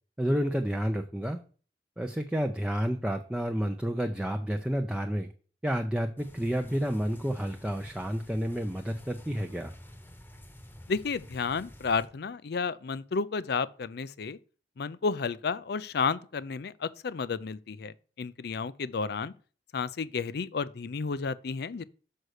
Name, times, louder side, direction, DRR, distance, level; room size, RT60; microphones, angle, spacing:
voice 1, 0.2-1.4 2.0-5.3 5.6-9.7, equal, 5° right, 0.5 m, -30 dB
sound 1, 6.2-12.1, equal, 10° left, 1.0 m, -49 dB
voice 2, 10.9-14.4 14.8-19.3 19.7-21.8, left 5 dB, 65° left, 0.5 m, -32 dB
6.5 x 5.5 x 6.4 m
head